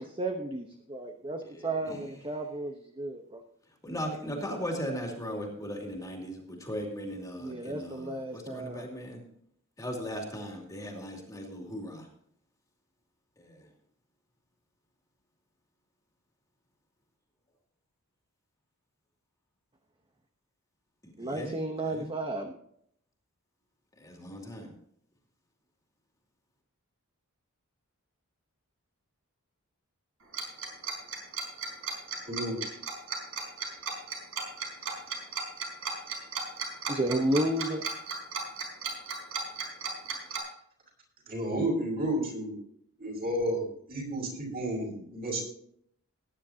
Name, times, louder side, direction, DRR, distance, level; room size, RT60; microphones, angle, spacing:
voice 1, 0.0-3.4 7.4-8.9 21.2-22.5 36.9-37.8, right 1 dB, 20° right, 3 dB, 1.0 m, -32 dB
voice 2, 1.4-2.1 3.8-9.2 9.8-12.1 13.4-13.7 21.0-22.1 24.0-24.7, equal, 15° left, 0 dB, 2.5 m, -38 dB
Tick-tock, 30.3-40.4, right 5 dB, 70° right, 4.4 m, -35 dB
voice 3, 32.3-32.6 41.3-42.6 43.0-45.4, right 1 dB, 45° right, -2 dB, 6.0 m, -31 dB
19.5 x 10.0 x 2.8 m, 0.67 s
head